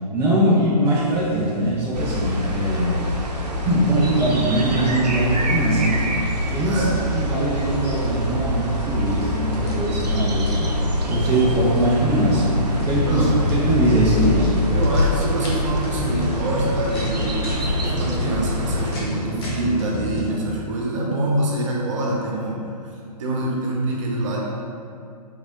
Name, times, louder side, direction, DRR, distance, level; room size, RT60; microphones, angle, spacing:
voice 1, 0.1-3.1 3.6-6.0 6.5-6.9 7.1-10.8 11.1-13.3 13.5-14.5, right 1 dB, 10° right, -7 dB, 0.4 m, -21 dB
sound 1, 0.9-20.4, left 1 dB, 40° left, 0.9 m, -32 dB
sound 2, 1.9-19.0, left 1 dB, 80° right, 0.7 m, -25 dB
voice 2, 6.6-6.9 13.0-13.3 14.7-22.7 23.2-24.4, right 1 dB, 50° right, -3 dB, 1.0 m, -25 dB
3.6 x 3.4 x 3.7 m, 2.5 s
figure-of-eight pair, 130°, 21 cm